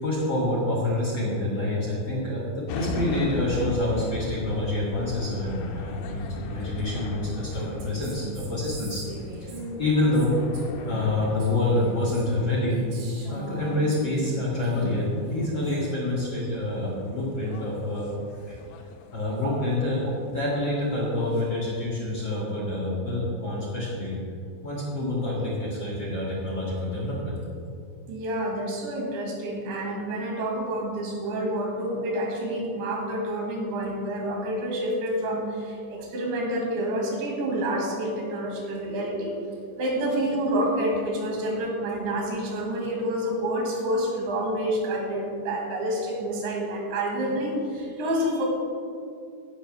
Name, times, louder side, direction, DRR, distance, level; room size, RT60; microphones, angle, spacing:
voice 1, 0.0-9.1 9.4-9.5 9.8-10.4 10.9-12.8 13.3-18.1 18.5-18.6 19.1-24.2 24.6-27.4, left 1 dB, 40° left, -5 dB, 2.0 m, -27 dB
sound 1, 2.7-21.8, left 3 dB, 90° left, 3.3 m, -38 dB
Female speech woman speaking, 7.5-14.4 14.6-15.9, right 3 dB, 50° right, 3.5 m, -41 dB
voice 2, 9.5-9.8 19.4-19.5 28.1-39.3 39.8-48.5, right 1 dB, 70° right, -1 dB, 4.4 m, -28 dB
17.0 x 12.0 x 2.2 m, 2.5 s
omnidirectional pair, 5.5 m